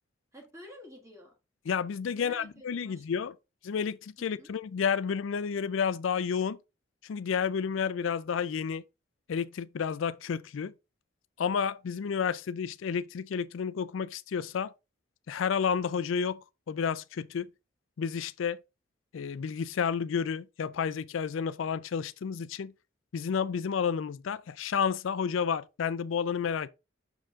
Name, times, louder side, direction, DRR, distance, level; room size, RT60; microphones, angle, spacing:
voice 1, 0.3-1.3 2.1-3.2 4.2-4.5, left 1 dB, 15° right, 1.7 m, -51 dB
voice 2, 1.7-3.3 3.6-6.6 7.0-8.8 9.3-10.7 11.4-14.7 15.3-16.4 16.7-17.5 18.0-18.6 19.1-22.7 23.1-26.7, left 6 dB, 90° left, 0.4 m, -31 dB
6.3 x 4.5 x 3.6 m
head